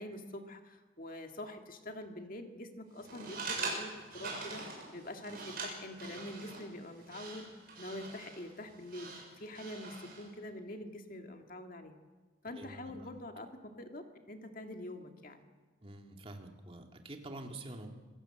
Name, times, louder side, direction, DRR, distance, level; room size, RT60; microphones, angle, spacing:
voice 1, 0.0-7.5 7.8-12.0 12.4-15.4, left 1 dB, 45° left, 5 dB, 2.1 m, -45 dB
sound 1, 3.0-10.3, right 3 dB, 50° right, 6.7 m, -43 dB
voice 2, 12.5-12.9 15.8-17.9, right 1 dB, 30° right, 3 dB, 2.4 m, -47 dB
26.5 x 16.5 x 7.9 m, 1.3 s
head